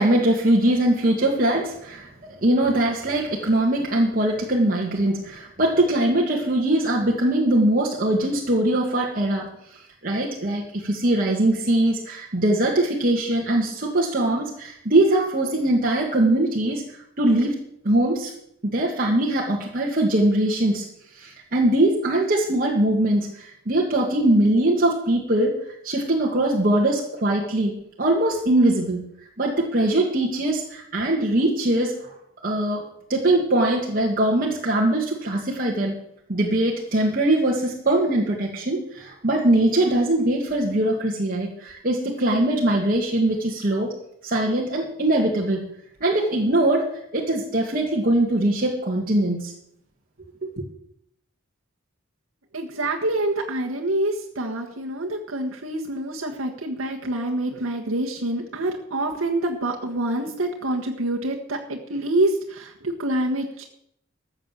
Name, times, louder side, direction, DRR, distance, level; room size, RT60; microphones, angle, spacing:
voice 1, 0.0-2.1 2.4-17.6 17.8-18.3 18.6-20.8 21.1-25.5 25.8-27.7 28.0-29.0 29.4-32.2 32.4-32.8 33.1-35.9 36.3-43.9 44.2-45.7 46.0-49.5 50.4-50.6, right 1 dB, 45° right, -2 dB, 2.0 m, -22 dB
voice 2, 52.5-63.7, right 1 dB, 90° right, 0 dB, 1.5 m, -26 dB
14.0 x 7.9 x 7.5 m, 0.73 s
head